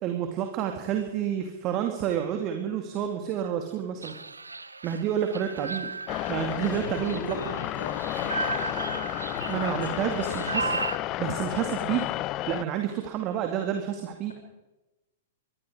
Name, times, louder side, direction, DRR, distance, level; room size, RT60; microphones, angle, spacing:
voice 1, 0.0-4.1 4.8-5.9 6.3-7.4 9.5-10.9 11.2-12.1 12.5-14.3, right 9 dB, 35° right, 5 dB, 2.3 m, -29 dB
sound 1, 4.0-11.0, right 3 dB, 80° right, 0.9 m, -35 dB
sound 2, 6.1-12.6, left 16 dB, 30° left, 0.6 m, -32 dB
voice 2, 6.6-9.1 9.3-10.6, left 3 dB, 70° left, 4 dB, 5.9 m, -39 dB
25.5 x 21.5 x 5.0 m, 1.0 s
figure-of-eight pair, 105°, 0 cm